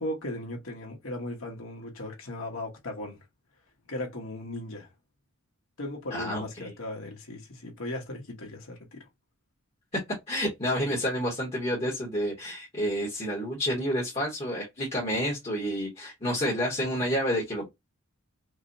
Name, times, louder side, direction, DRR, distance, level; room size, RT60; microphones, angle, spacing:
voice 1, 0.0-3.2 3.9-4.9 5.8-9.1, left 1 dB, 70° left, 1.4 m, -37 dB
voice 2, 6.1-6.7 10.3-17.7, equal, 25° left, 1.1 m, -29 dB
4.8 x 2.2 x 2.7 m
head